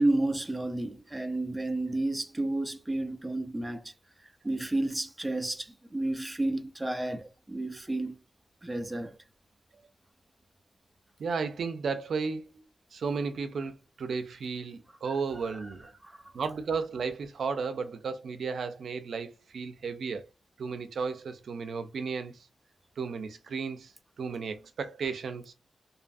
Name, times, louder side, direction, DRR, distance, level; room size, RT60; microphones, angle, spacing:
voice 1, 0.0-3.9 4.2-8.2 8.6-9.2 15.4-15.7 16.0-16.3, right 2 dB, 10° right, 0.4 m, -31 dB
voice 2, 11.2-12.4 12.9-13.7 14.0-15.9 16.3-20.2 20.6-22.3 23.0-23.9 24.2-25.5, right 5 dB, 80° right, 0.4 m, -34 dB
2.6 x 2.4 x 2.5 m
wide cardioid pair, 130°, 0 cm